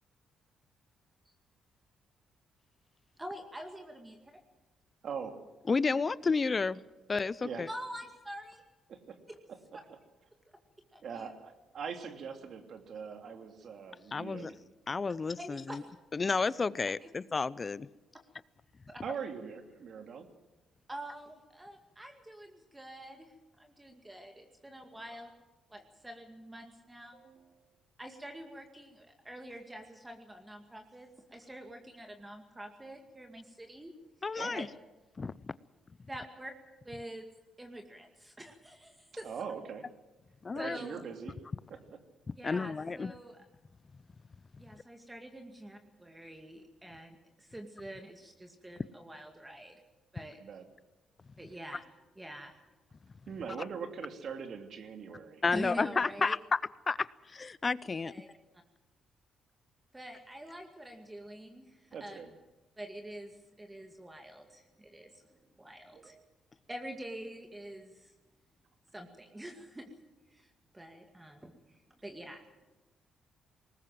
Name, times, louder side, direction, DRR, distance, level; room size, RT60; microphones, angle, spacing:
voice 1, 3.2-4.2 7.7-8.6 9.3-9.4 10.9-11.3 15.4-15.9 17.0-17.1 18.9-19.0 20.9-25.3 25.7-27.2 28.0-34.7 36.1-36.5 36.8-37.2 37.6-39.3 40.6-41.0 42.4-43.4 44.6-49.8 50.1-50.4 51.4-51.8 52.2-52.6 55.5-56.4 58.1-58.3 59.9-62.2 62.8-66.1 66.7-68.1 68.9-69.9 70.3-72.4, right 1 dB, 15° right, 4 dB, 2.2 m, -46 dB
voice 2, 5.0-5.3 7.4-7.6 8.9-9.2 11.0-14.5 19.0-20.3 27.1-27.5 34.4-34.7 39.2-39.9 40.6-41.3 41.7-42.0 50.4-50.6 53.3-55.4 61.9-62.3 65.9-66.2, right 6 dB, 60° right, 6 dB, 2.9 m, -42 dB
voice 3, 5.7-6.8 7.1-7.7 14.1-14.5 14.9-15.8 16.1-17.9 34.2-34.7 35.2-35.3 40.4-40.8 42.4-43.1 55.4-56.6 56.9-58.1, left 4 dB, 30° left, 19 dB, 0.7 m, -31 dB
20.0 x 19.0 x 7.7 m, 1.1 s
cardioid pair, 90°, 0 cm